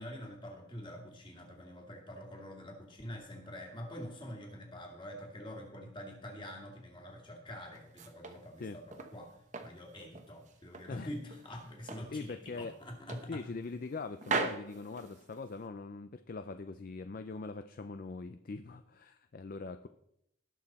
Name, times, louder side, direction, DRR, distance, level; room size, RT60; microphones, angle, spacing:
voice 1, 0.0-13.4, equal, 25° left, 1 dB, 2.3 m, -46 dB
sound 1, 7.7-9.2 9.5-10.9 11.3-12.1 12.5-12.6 13.1-13.9 14.2-15.6, right 4 dB, 40° right, 1.0 m, -39 dB
voice 2, 12.1-12.8 13.3-19.9, left 3 dB, 45° left, 9 dB, 0.4 m, -42 dB
18.0 x 6.1 x 4.2 m, 0.77 s
head